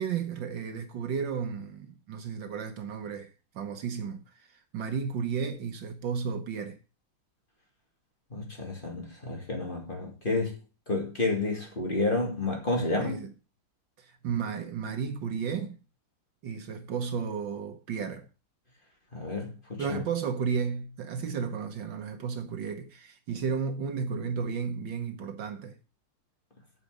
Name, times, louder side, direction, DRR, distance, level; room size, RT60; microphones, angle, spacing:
voice 1, 0.0-6.8 13.0-13.3 14.0-15.7 16.4-18.3 19.8-25.8, right 6 dB, 65° right, 1.7 m, -33 dB
voice 2, 8.3-10.6 10.9-13.2 19.1-20.0, left 2 dB, 25° left, 2.5 m, -30 dB
9.1 x 5.5 x 6.5 m
omnidirectional pair, 2.2 m